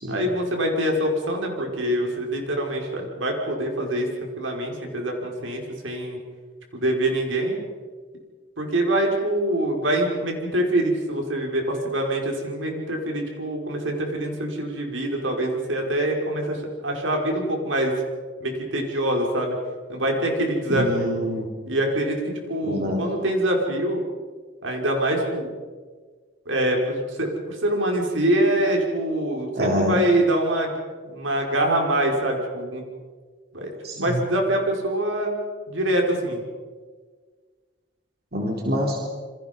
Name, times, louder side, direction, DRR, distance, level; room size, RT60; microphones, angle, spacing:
voice 1, 0.1-4.1 4.4-6.2 6.7-7.6 8.6-17.9 18.4-19.6 19.9-21.2 21.7-24.0 24.6-25.5 26.5-30.7 31.0-32.8 33.5-35.4 35.7-36.4, right 1 dB, 80° right, 1 dB, 5.6 m, -24 dB
voice 2, 20.7-21.5 22.6-23.0 29.6-30.0 33.8-34.2 38.3-39.0, equal, 50° right, 0 dB, 3.7 m, -25 dB
28.5 x 25.5 x 5.5 m, 1.5 s
head